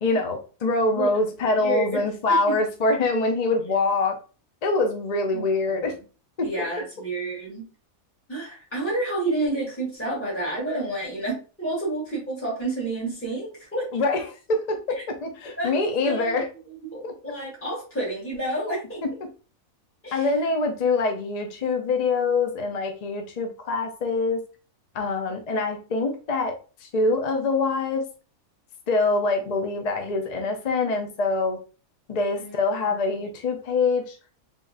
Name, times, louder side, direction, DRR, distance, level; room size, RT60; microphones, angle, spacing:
voice 1, 0.0-4.2 4.6-6.0 6.4-6.5 13.9-16.5 17.0-17.1 19.0-19.3 20.1-24.4 24.9-28.1 28.9-31.6 32.1-34.2, left 3 dB, 45° left, 4 dB, 0.6 m, -24 dB
voice 2, 1.4-2.0 2.5-2.6 5.3-5.5 5.7-5.9 6.4-7.7 8.3-14.0 14.9-15.0 15.6-16.4 16.8-19.0 20.0-20.3 32.4-32.5 32.9-33.0, right 2 dB, 10° left, -6 dB, 2.0 m, -30 dB
3.6 x 3.5 x 2.5 m, 0.35 s
omnidirectional pair, 1.5 m